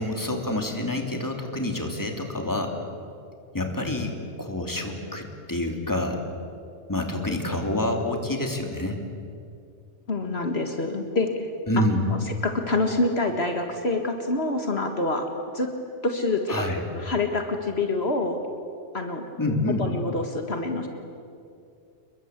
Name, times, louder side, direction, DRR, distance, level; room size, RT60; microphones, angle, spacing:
voice 1, 0.0-2.8 3.5-6.2 6.9-9.0 11.7-12.0 16.5-16.8 19.4-19.8, left 1 dB, 15° left, 2 dB, 3.0 m, -27 dB
voice 2, 10.1-11.5 12.4-15.3 15.5-15.7 16.0-16.6 16.9-18.4 18.9-19.3 19.8-20.9, left 2 dB, 65° left, 4 dB, 2.2 m, -26 dB
29.0 x 22.0 x 8.3 m, 2.4 s
omnidirectional pair, 1.2 m